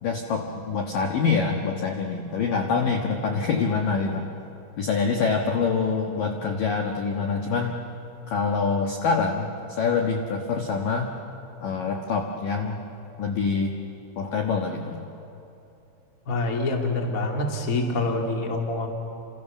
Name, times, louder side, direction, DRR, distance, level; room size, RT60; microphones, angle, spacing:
voice 1, 0.0-4.2 4.8-7.8 8.3-11.1 11.6-12.8 13.2-13.7 14.2-15.1, left 5 dB, 65° left, 2 dB, 2.3 m, -25 dB
voice 2, 16.3-18.9, left 2 dB, 25° left, 2 dB, 2.0 m, -26 dB
29.5 x 28.0 x 7.1 m, 2.8 s
omnidirectional pair, 5.6 m